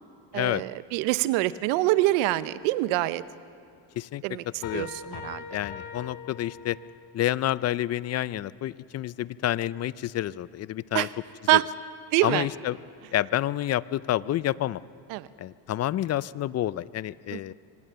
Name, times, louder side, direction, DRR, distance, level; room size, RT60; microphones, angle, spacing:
voice 1, 0.3-3.2 4.2-4.4 4.7-5.4 10.9-11.1 11.5-11.6 12.1-12.5 15.1-15.3 17.3-17.5, right 18 dB, 75° right, 15 dB, 1.0 m, -25 dB
sound 1, 4.6-7.1, left 6 dB, 60° left, 3.9 m, -41 dB
voice 2, 4.6-5.2 5.5-6.8 7.1-11.1 11.5-11.6 12.2-12.8 13.1-14.8 15.4-17.5, left 13 dB, 35° left, 19 dB, 0.5 m, -29 dB
25.0 x 18.5 x 6.9 m, 2.7 s
supercardioid pair, 105°, 48 cm